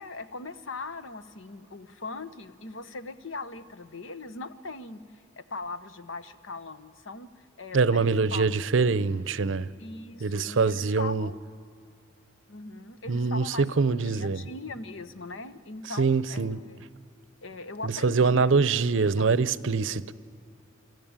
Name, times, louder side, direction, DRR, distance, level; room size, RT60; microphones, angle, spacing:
voice 1, 0.0-5.0 5.4-8.5 9.8-11.4 12.5-16.8 17.4-19.3, left 3 dB, 85° left, 1.0 m, -40 dB
voice 2, 7.7-9.7 10.2-11.3 13.1-14.5 16.0-16.6 17.8-20.1, right 4 dB, 75° right, 0.6 m, -24 dB
26.0 x 14.0 x 8.9 m
head